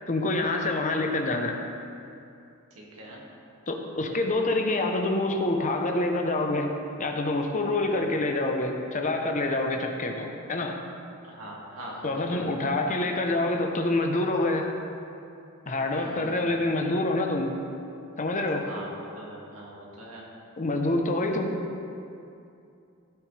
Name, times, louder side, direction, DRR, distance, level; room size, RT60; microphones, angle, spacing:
voice 1, 0.1-1.6 3.7-6.7 7.0-10.8 12.0-14.7 15.7-17.5 18.2-18.7 20.6-21.6, left 2 dB, 35° left, 3 dB, 0.8 m, -26 dB
voice 2, 2.8-3.2 7.8-8.1 11.2-12.5 15.9-16.5 18.6-20.3, equal, 70° right, -3 dB, 2.1 m, -42 dB
16.0 x 6.4 x 3.3 m, 2.6 s
head